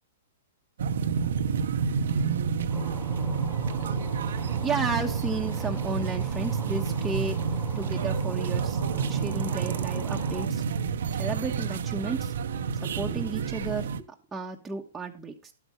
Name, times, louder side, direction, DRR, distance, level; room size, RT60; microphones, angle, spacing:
sound 1, 0.8-14.0, right 6 dB, 70° right, 0.8 m, -29 dB
sound 2, 2.7-10.5, left 3 dB, 20° left, 3.1 m, -45 dB
voice 1, 4.6-7.4 7.7-10.6 11.1-12.3 12.7-13.9 14.3-15.5, right 3 dB, 10° right, 1.2 m, -33 dB
11.5 x 8.0 x 3.2 m
hypercardioid pair, 115°, 0 cm